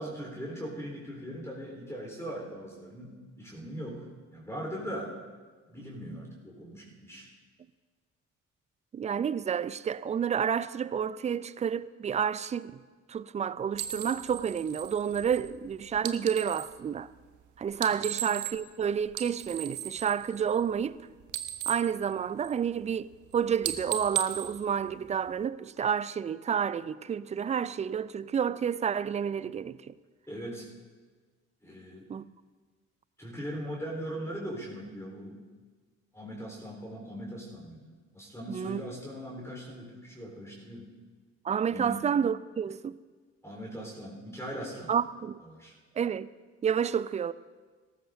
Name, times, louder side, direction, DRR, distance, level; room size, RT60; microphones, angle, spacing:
voice 1, 0.0-5.1 5.7-7.3 17.9-18.1 30.3-30.7 31.6-32.1 33.2-35.4 36.1-40.9 41.7-42.0 43.4-44.9 45.4-45.7, equal, 5° left, 4.0 m, -40 dB
voice 2, 8.9-12.8 13.1-17.1 17.6-21.0 21.7-29.9 32.1-32.2 38.5-38.8 41.4-43.0 44.9-45.4 46.0-46.3 46.6-47.3, right 7 dB, 20° right, 0.3 m, -30 dB
sound 1, 13.7-16.8 17.7-18.8 19.1-21.0 21.2-22.8 23.1-23.3 23.6-25.4, right 10 dB, 55° right, 0.9 m, -37 dB
18.5 x 13.5 x 2.7 m
figure-of-eight pair, 45°, 37 cm